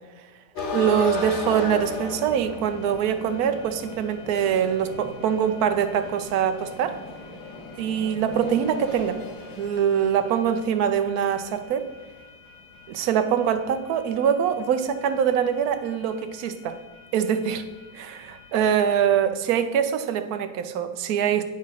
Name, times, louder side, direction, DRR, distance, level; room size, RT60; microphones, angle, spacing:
sound 1, 0.5-19.2, left 2 dB, 85° left, 2.1 m, -38 dB
voice 1, 0.7-7.0 7.8-9.2 9.6-11.9 12.9-16.7 17.1-17.6 17.9-18.2 18.5-21.4, right 8 dB, 65° right, 8 dB, 1.0 m, -23 dB
8.6 x 5.1 x 5.6 m, 1.2 s
omnidirectional pair, 2.0 m